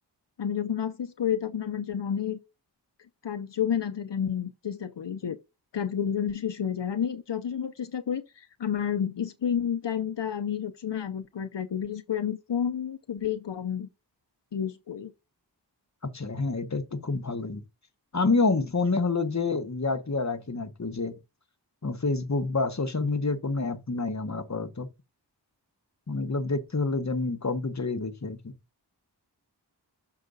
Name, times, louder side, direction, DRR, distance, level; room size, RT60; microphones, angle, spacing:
voice 1, 0.4-2.4 3.2-5.4 5.7-13.9 14.5-15.1, left 8 dB, 80° left, 0.7 m, -30 dB
voice 2, 16.0-17.6 18.1-21.1 21.8-24.9 26.1-28.5, left 3 dB, 40° left, 1.0 m, -28 dB
6.6 x 5.8 x 3.9 m
wide cardioid pair, 50°, 42 cm